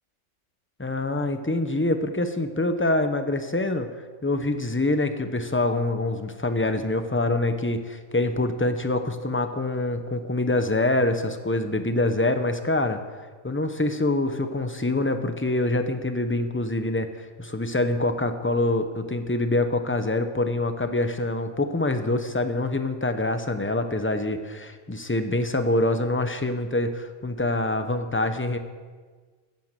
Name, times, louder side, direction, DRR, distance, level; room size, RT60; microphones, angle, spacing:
voice 1, 0.8-3.9 4.2-13.0 13.4-28.6, left 2 dB, 15° left, 8 dB, 0.6 m, -25 dB
11.5 x 9.5 x 7.5 m, 1.5 s
omnidirectional pair, 1.3 m